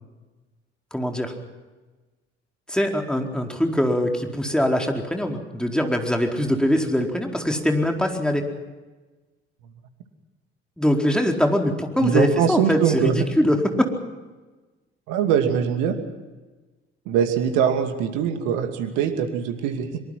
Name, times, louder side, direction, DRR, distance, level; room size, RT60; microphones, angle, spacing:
voice 1, 0.9-1.3 2.7-8.5 10.8-13.9, equal, 5° left, 2 dB, 4.4 m, -22 dB
voice 2, 12.0-13.2 15.1-16.0 17.1-20.0, right 8 dB, 70° right, 7 dB, 2.5 m, -22 dB
24.0 x 23.5 x 5.9 m, 1.2 s
figure-of-eight pair, 45°, 31 cm